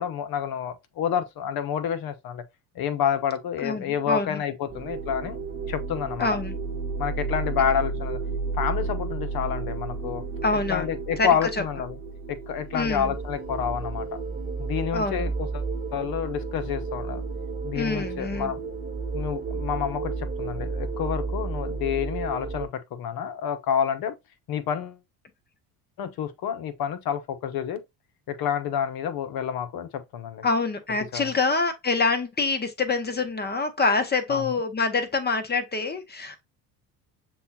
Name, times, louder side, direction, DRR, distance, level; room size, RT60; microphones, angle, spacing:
voice 1, 0.0-2.4 2.7-5.4 5.7-6.3 7.0-8.2 8.5-10.3 10.7-12.0 12.3-14.1 14.6-15.6 15.9-17.2 17.6-18.6 19.1-24.1 24.5-25.0 26.0-27.8 28.3-30.5 31.1-31.3 34.3-34.5, left 8 dB, 55° left, 0.9 m, -29 dB
voice 2, 3.6-4.4 6.2-6.6 10.4-10.9 11.2-11.3 12.7-13.1 14.9-15.3 17.7-18.5 30.4-36.4, left 3 dB, 20° left, 0.9 m, -26 dB
sound 1, 4.7-22.7, right 4 dB, 20° right, 1.2 m, -32 dB
6.9 x 2.3 x 2.6 m
hypercardioid pair, 70°, 44 cm